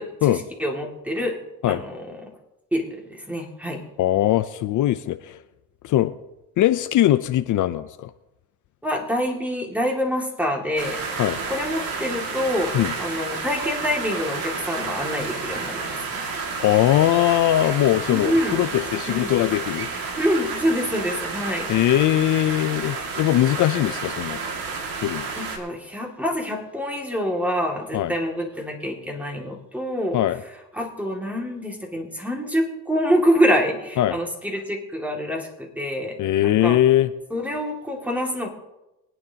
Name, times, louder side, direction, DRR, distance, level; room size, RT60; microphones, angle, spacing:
voice 1, 0.0-1.4 1.7-2.3 2.7-3.8 8.8-11.0 11.5-12.7 13.0-16.2 18.1-18.6 19.1-19.3 20.2-21.7 25.4-30.2 30.7-36.8 37.3-38.5, equal, 5° right, 0 dB, 2.2 m, -26 dB
voice 2, 4.0-5.4 5.8-6.1 6.6-8.1 11.2-11.4 12.7-12.9 16.6-19.9 21.7-24.4 25.0-25.3 27.9-28.1 30.1-30.4 34.0-34.2 36.2-37.1, left 13 dB, 60° left, 11 dB, 0.6 m, -20 dB
sound 1, 10.8-25.6, right 4 dB, 75° right, 2.2 m, -31 dB
23.0 x 9.5 x 2.9 m, 0.98 s
cardioid pair, 105°, 34 cm